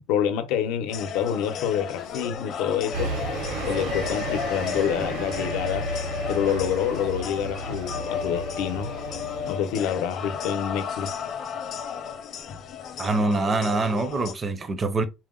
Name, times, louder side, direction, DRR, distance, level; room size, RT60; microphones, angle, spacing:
voice 1, 0.1-3.1 3.7-5.9 6.3-8.9 9.4-11.1, left 9 dB, 85° left, 0.6 m, -27 dB
sound 1, 0.9-14.3, left 7 dB, 40° left, 0.6 m, -33 dB
sound 2, 2.9-9.6, right 3 dB, 80° right, 0.6 m, -34 dB
voice 2, 13.0-15.0, right 3 dB, 20° right, 0.4 m, -24 dB
4.3 x 2.0 x 3.7 m
cardioid pair, 165°, 0 cm